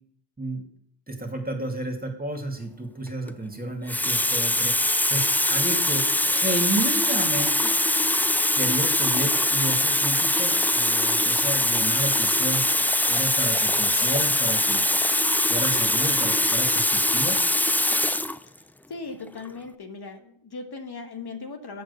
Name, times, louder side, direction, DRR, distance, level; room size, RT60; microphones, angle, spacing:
voice 1, 1.1-4.8 5.1-7.7 8.5-12.6 13.1-14.8 15.5-17.4, right 2 dB, 20° right, 3 dB, 2.4 m, -31 dB
Water tap faucet, 3.1-3.3 3.9-18.4 19.3-19.5, left 1 dB, 5° left, 0.3 m, -22 dB
voice 2, 18.9-21.8, left 4 dB, 55° left, 5 dB, 1.3 m, -38 dB
7.8 x 6.4 x 7.0 m, 0.64 s
cardioid pair, 60°, 46 cm